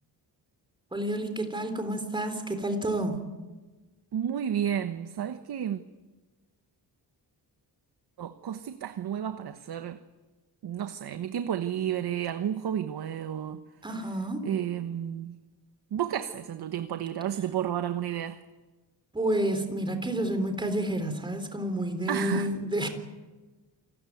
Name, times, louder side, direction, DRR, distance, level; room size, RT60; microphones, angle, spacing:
voice 1, 0.9-3.2 13.8-14.5 19.1-22.9, right 1 dB, 10° right, 3.7 m, -29 dB
voice 2, 4.1-5.8 8.2-10.0 10.6-13.6 14.4-15.3 15.9-18.4 22.1-22.5, right 10 dB, 65° right, 1.3 m, -31 dB
28.0 x 18.5 x 9.4 m
wide cardioid pair, 160°, 41 cm